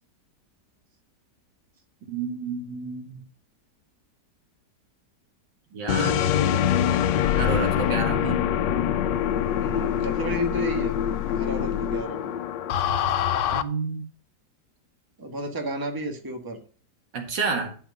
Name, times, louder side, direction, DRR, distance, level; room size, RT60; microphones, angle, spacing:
voice 1, 2.1-3.2 5.7-6.2 7.3-8.5 13.5-14.0 17.1-17.8, right 4 dB, 85° right, 2.3 m, -30 dB
sound 1, 5.9-13.6, left 9 dB, 85° left, 1.3 m, -24 dB
voice 2, 9.6-11.0 11.2-12.3 15.2-16.6, right 1 dB, 15° right, 1.3 m, -32 dB
11.0 x 4.6 x 5.3 m
omnidirectional pair, 1.9 m